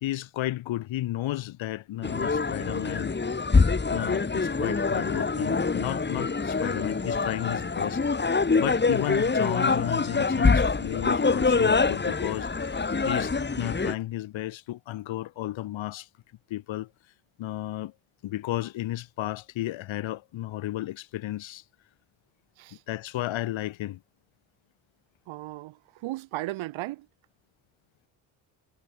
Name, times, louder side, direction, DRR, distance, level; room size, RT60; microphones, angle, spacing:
voice 1, 0.0-3.1 3.9-12.8 13.1-16.1 16.5-16.9 17.4-17.9 18.2-21.6 22.9-24.0, left 15 dB, 80° left, 3.6 m, -33 dB
sound 1, 2.0-14.0, left 4 dB, 25° left, 1.7 m, -25 dB
voice 2, 25.3-27.1, right 18 dB, 85° right, 4.7 m, -36 dB
supercardioid pair, 65°, 46 cm